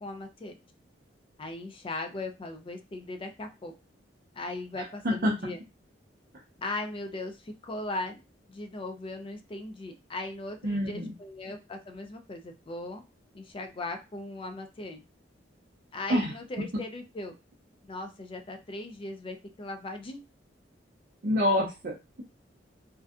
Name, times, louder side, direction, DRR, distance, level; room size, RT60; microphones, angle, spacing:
voice 1, 0.0-0.5 1.4-3.7 4.3-5.6 6.6-8.2 8.5-13.0 13.3-15.0 15.9-17.3 17.8-20.3, left 2 dB, 30° left, 6 dB, 0.4 m, -38 dB
voice 2, 4.7-5.3 10.6-11.1 16.1-16.3 21.2-22.2, left 1 dB, 55° right, -3 dB, 0.5 m, -27 dB
2.5 x 2.2 x 2.4 m, 0.26 s
head